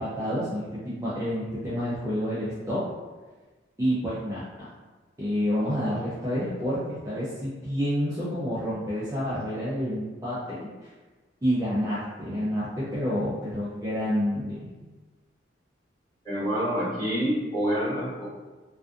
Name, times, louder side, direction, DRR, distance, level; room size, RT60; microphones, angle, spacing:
voice 1, 0.0-2.8 3.8-4.7 5.2-10.9 11.4-14.7, equal, 15° right, -9 dB, 0.4 m, -29 dB
voice 2, 16.2-18.3, equal, 20° left, -13 dB, 1.3 m, -27 dB
2.5 x 2.4 x 2.3 m, 1.3 s
head